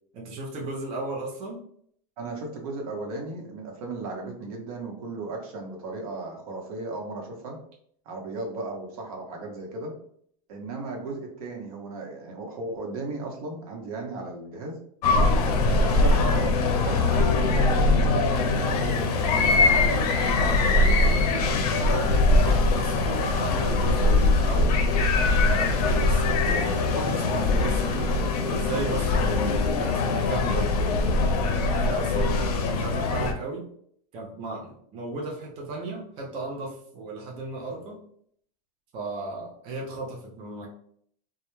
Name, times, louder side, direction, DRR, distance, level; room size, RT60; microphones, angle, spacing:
voice 1, 0.1-1.6 19.4-24.8 25.4-28.1 28.5-30.7 31.1-33.7 34.1-38.0 38.9-40.7, right 3 dB, 30° right, -2 dB, 0.4 m, -35 dB
voice 2, 2.2-7.6 8.1-9.9 10.5-14.8 15.4-19.0, right 3 dB, 65° right, 2 dB, 0.8 m, -35 dB
sound 1, 15.0-33.3, left 3 dB, 80° left, 0.5 m, -22 dB
2.2 x 2.1 x 3.0 m, 0.64 s
supercardioid pair, 145°, 20 cm